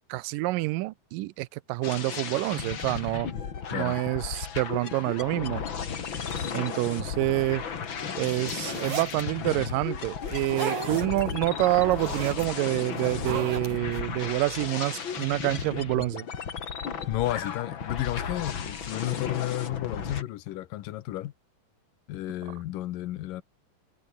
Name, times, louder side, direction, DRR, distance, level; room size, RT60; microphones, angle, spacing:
voice 1, 0.1-3.3 3.7-5.6 6.5-7.6 8.2-16.2, right 19 dB, 85° right, 2.3 m, -27 dB
sound 1, 1.8-20.2, left 7 dB, 40° left, 2.4 m, -34 dB
sound 2, 8.5-9.2 10.3-11.2 11.6-12.5 13.0-14.0, right 5 dB, 60° right, 6.3 m, -35 dB
voice 2, 17.1-21.3 22.1-23.4, left 14 dB, 80° left, 2.7 m, -32 dB
omnidirectional pair, 3.8 m